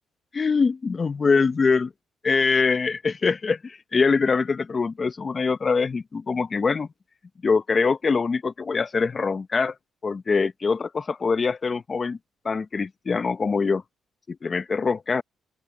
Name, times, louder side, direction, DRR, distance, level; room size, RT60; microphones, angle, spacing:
voice 1, 0.3-1.9 2.2-6.9 7.4-9.7 10.0-12.2 12.4-13.8 14.3-15.2, left 4 dB, 35° left, 0.9 m, -23 dB
cardioid pair, 90°, 0 cm